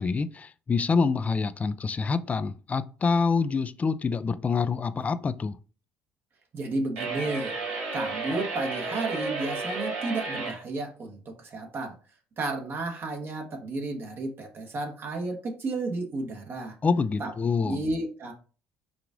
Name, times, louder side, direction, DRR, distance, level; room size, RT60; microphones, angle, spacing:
voice 1, 0.0-5.6 16.8-17.8, left 4 dB, 30° left, 0.4 m, -26 dB
voice 2, 6.5-7.5 7.9-11.9 12.4-16.8 17.2-17.3 17.6-18.3, right 2 dB, 45° right, 1.2 m, -32 dB
sound 1, 7.0-10.6, right 3 dB, 90° right, 1.6 m, -32 dB
4.8 x 2.4 x 3.5 m
supercardioid pair, 80°, 5 cm